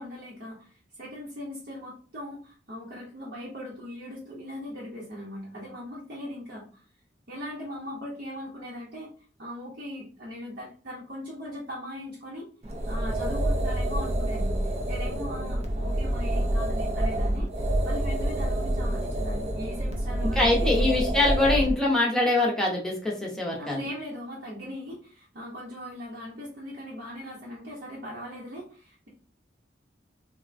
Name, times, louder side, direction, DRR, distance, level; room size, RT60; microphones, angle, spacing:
voice 1, 0.0-6.8 7.3-9.1 9.4-12.5 12.9-17.5 17.8-21.0 23.6-29.1, left 1 dB, 60° right, -6 dB, 0.8 m, -39 dB
sound 1, 12.6-21.8, right 1 dB, 35° right, 0.4 m, -27 dB
voice 2, 20.2-23.8, left 2 dB, 5° left, -3 dB, 0.6 m, -24 dB
3.2 x 2.1 x 2.5 m, 0.40 s
head